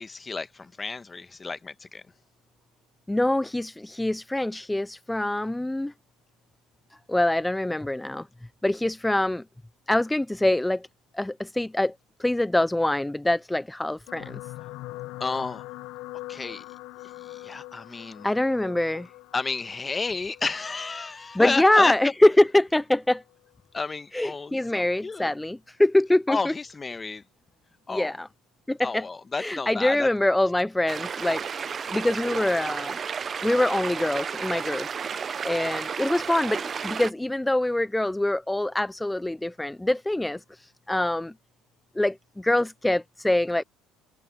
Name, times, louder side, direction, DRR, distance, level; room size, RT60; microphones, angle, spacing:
voice 1, 0.0-2.0 15.2-15.7 16.3-16.6 17.2-18.3 19.3-21.9 23.7-25.3 26.3-27.2 27.9-28.2 28.8-30.1, left 4 dB, 25° left, 1.2 m, -31 dB
voice 2, 3.1-5.9 7.1-8.3 8.6-9.4 9.9-10.9 11.1-11.9 12.2-14.4 18.2-19.1 21.4-23.2 24.1-26.5 27.9-28.3 28.7-29.0 29.4-33.0 33.4-34.9 35.4-41.3 42.0-43.6, left 1 dB, 10° left, 0.4 m, -24 dB
sound 1, 14.1-22.5 23.3-23.5 23.8-23.9, left 18 dB, 75° left, 0.8 m, -43 dB
sound 2, 30.9-37.1, right 6 dB, 35° right, 0.7 m, -32 dB
supercardioid pair, 90°, 0 cm